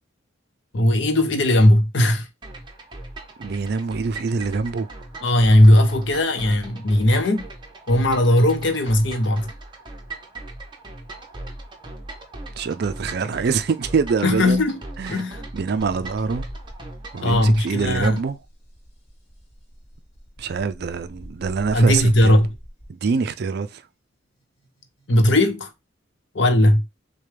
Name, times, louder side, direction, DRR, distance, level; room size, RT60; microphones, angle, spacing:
voice 1, 0.7-2.3 5.2-7.5 7.9-9.5 14.2-14.8 15.1-15.5 17.2-18.2 21.7-22.5 25.1-25.7 26.3-26.8, left 1 dB, 65° left, 0.7 m, -17 dB
sound 1, 2.4-18.3, right 2 dB, 25° right, 0.9 m, -39 dB
voice 2, 3.4-4.9 12.6-14.6 15.0-15.2 15.5-16.4 17.1-18.4 20.4-22.3 23.0-23.8, right 5 dB, 55° right, 0.4 m, -25 dB
sound 2, 15.8-17.2 17.5-22.9 24.6-25.1, equal, 35° left, 1.3 m, -42 dB
6.5 x 2.2 x 3.3 m
head